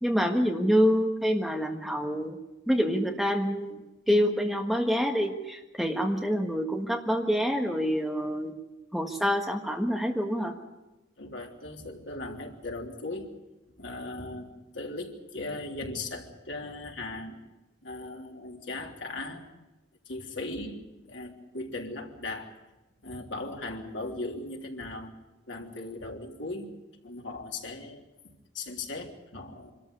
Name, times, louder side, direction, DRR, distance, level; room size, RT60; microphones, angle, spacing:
voice 1, 0.0-2.4 2.7-3.8 4.1-8.5 8.9-10.5, equal, ahead, 2 dB, 1.5 m, -26 dB
voice 2, 11.2-13.3 13.8-17.4 17.8-19.4 20.1-20.8 21.0-22.5 23.0-25.1 25.5-26.7 27.0-28.0 28.5-29.7, left 2 dB, 85° left, 1 dB, 3.3 m, -38 dB
25.5 x 13.5 x 9.7 m, 1.0 s
head